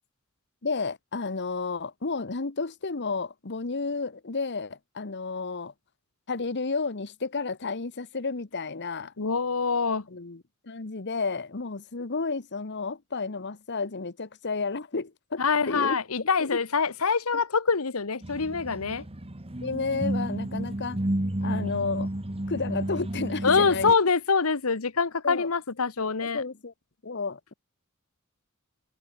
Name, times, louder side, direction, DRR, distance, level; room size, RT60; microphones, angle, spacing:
voice 1, 0.6-5.7 6.3-9.1 10.1-16.6 19.6-21.0 21.4-22.1 22.5-23.9 25.2-25.5 26.2-26.7 27.0-27.5, left 4 dB, 55° left, 1.2 m, -32 dB
voice 2, 9.2-10.1 15.4-19.0 23.4-26.4, left 5 dB, 75° left, 1.2 m, -25 dB
sound 1, 18.2-23.9, right 1 dB, 25° right, 1.4 m, -31 dB
head